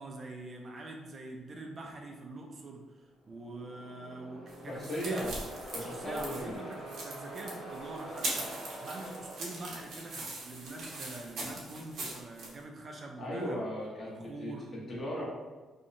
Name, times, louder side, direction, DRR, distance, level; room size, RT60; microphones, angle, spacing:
voice 1, 0.0-5.3 5.8-13.6 14.0-14.7, right 2 dB, 40° right, 1 dB, 0.4 m, -45 dB
sound 1, 3.2-10.3, right 1 dB, 70° left, 1.1 m, -46 dB
sound 2, 4.5-12.5, right 2 dB, 70° right, 0.8 m, -41 dB
voice 2, 4.7-5.4 5.7-6.6 13.2-15.3, equal, 40° left, -5 dB, 0.9 m, -37 dB
2.7 x 2.1 x 2.5 m, 1.3 s
cardioid pair, 90°, 0 cm